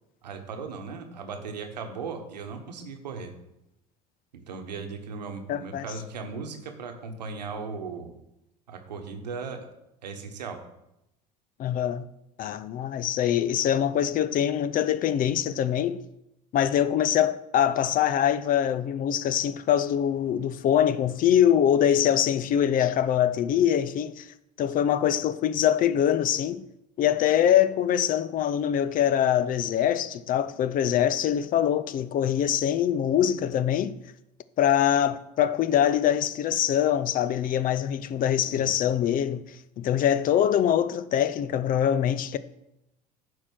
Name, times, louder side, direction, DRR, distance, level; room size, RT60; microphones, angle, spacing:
voice 1, 0.2-3.3 4.3-8.1 8.7-9.7 10.0-10.6 38.4-38.7, right 4 dB, 85° right, 1.2 m, -37 dB
voice 2, 5.5-5.8 11.6-12.1 12.4-16.0 16.5-24.3 24.6-26.7 27.0-34.0 34.6-39.4 39.8-42.4, left 10 dB, 40° left, 0.6 m, -23 dB
9.4 x 4.7 x 6.3 m
hypercardioid pair, 70°, 21 cm